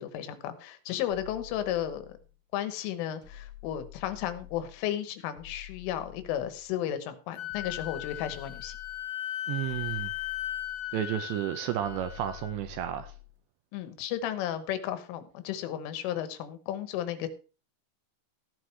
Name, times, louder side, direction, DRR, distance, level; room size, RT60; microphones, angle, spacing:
voice 1, 0.0-2.2 2.5-8.8 13.7-17.3, left 11 dB, 90° left, 3.7 m, -34 dB
sound 1, 1.1-2.4 3.2-4.8 5.3-6.8 7.5-9.1 9.6-11.0 11.8-13.4, left 13 dB, 10° right, 2.3 m, -48 dB
Wind instrument woodwind instrument, 7.4-12.5, left 13 dB, 60° left, 3.3 m, -37 dB
voice 2, 9.5-10.1 10.9-13.1, right 11 dB, 80° right, 2.7 m, -32 dB
15.0 x 9.6 x 3.3 m
omnidirectional pair, 5.6 m